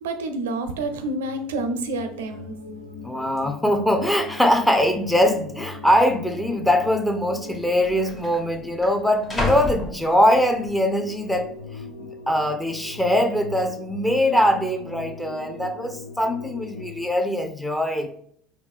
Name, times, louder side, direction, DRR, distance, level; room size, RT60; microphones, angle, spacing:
voice 1, 0.0-2.6, right 2 dB, 75° right, 8 dB, 0.5 m, -28 dB
sound 1, 0.7-17.1, left 4 dB, 85° left, 0.4 m, -40 dB
sound 2, 1.9-2.0 2.2-2.7 3.4-3.5 4.2-4.7 5.0-5.1 6.0-6.1 7.1-7.2 7.5-10.7 11.2-11.6, left 2 dB, 25° left, 1.2 m, -32 dB
voice 2, 3.0-11.5 12.3-18.2, equal, 5° left, 6 dB, 0.6 m, -22 dB
4.6 x 2.3 x 3.6 m, 0.63 s
hypercardioid pair, 70°, 0 cm